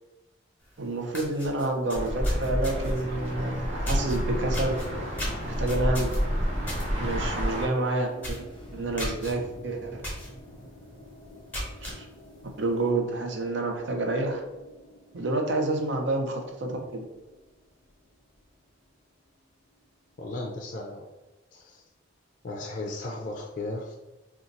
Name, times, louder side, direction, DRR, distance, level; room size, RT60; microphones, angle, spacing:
sound 1, 0.7-0.8 1.1-3.0 3.8-4.2 4.5-6.9 7.2-7.5 7.8-7.9 8.2-8.5 9.0-9.3 10.0-10.3 10.7-10.8 11.3-12.0, equal, 10° left, 1.0 m, -36 dB
voice 1, 0.8-4.8 5.4-6.1 7.0-8.5 8.7-10.2 11.8-12.1 12.6-14.4 15.1-17.0, right 2 dB, 70° right, 3 dB, 0.6 m, -29 dB
sound 2, 1.9-7.7, equal, 35° right, 0.8 m, -29 dB
sound 3, 3.8-20.2, left 1 dB, 25° left, 0.7 m, -48 dB
voice 2, 20.2-21.1 21.5-21.8 22.4-24.0, left 2 dB, 45° left, 0 dB, 0.4 m, -35 dB
2.6 x 2.3 x 3.9 m, 1.0 s
head